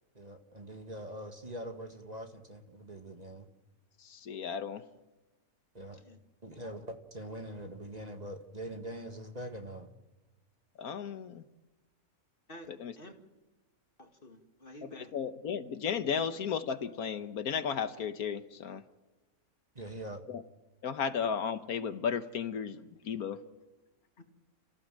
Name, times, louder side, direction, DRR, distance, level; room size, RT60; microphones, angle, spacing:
voice 1, 0.1-3.5 5.7-6.0 6.4-9.9 19.7-20.2, right 1 dB, 30° right, 5 dB, 1.8 m, -43 dB
voice 2, 4.0-4.8 10.8-11.4 12.7-13.0 14.8-18.8 20.3-20.4 20.8-23.4, left 7 dB, 80° left, 10 dB, 1.6 m, -34 dB
voice 3, 6.5-6.9 12.5-13.1 14.0-15.1 24.2-24.3, left 1 dB, 40° left, 4 dB, 2.4 m, -51 dB
30.0 x 15.5 x 7.6 m, 1.1 s
omnidirectional pair, 1.5 m